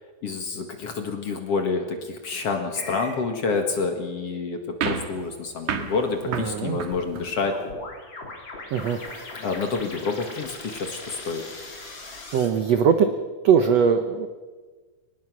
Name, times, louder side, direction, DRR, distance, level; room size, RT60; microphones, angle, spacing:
voice 1, 0.2-7.6 9.4-11.4, left 4 dB, 50° left, 5 dB, 2.2 m, -28 dB
sound 1, 2.7-3.2 6.9-12.5, left 2 dB, 30° left, 4.0 m, -39 dB
sound 2, 4.8-7.7, right 6 dB, 55° right, 2.6 m, -32 dB
voice 2, 6.3-6.8 8.7-9.0 12.3-13.1 13.4-14.3, right 7 dB, 80° right, 8 dB, 1.4 m, -20 dB
24.0 x 20.0 x 6.2 m, 1.4 s
omnidirectional pair, 4.5 m